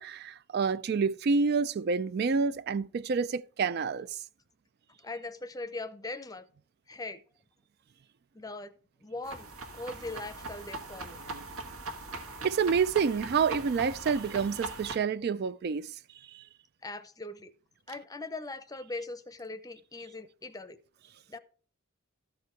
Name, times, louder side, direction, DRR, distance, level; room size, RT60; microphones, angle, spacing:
voice 1, 0.0-4.2 12.4-16.0 16.3-16.4, right 5 dB, 50° right, 0.3 m, -28 dB
voice 2, 5.0-6.5 6.9-7.2 8.3-8.7 9.0-11.5 16.8-17.5 17.9-20.8 21.3-21.4, left 2 dB, 15° left, 0.6 m, -40 dB
sound 1, 9.2-15.0, right 3 dB, 80° right, 1.6 m, -40 dB
13.5 x 4.8 x 4.5 m
head